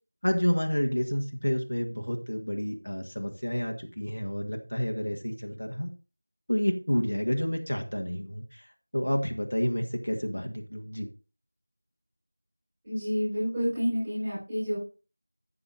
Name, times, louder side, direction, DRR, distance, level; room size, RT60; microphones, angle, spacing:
voice 1, 0.2-5.9 6.5-8.7 8.9-11.1, equal, 85° left, 3 dB, 1.7 m, -29 dB
voice 2, 12.8-14.8, equal, 15° right, -9 dB, 5.0 m, -29 dB
14.0 x 6.8 x 2.6 m, 0.34 s
figure-of-eight pair, 175°, 0 cm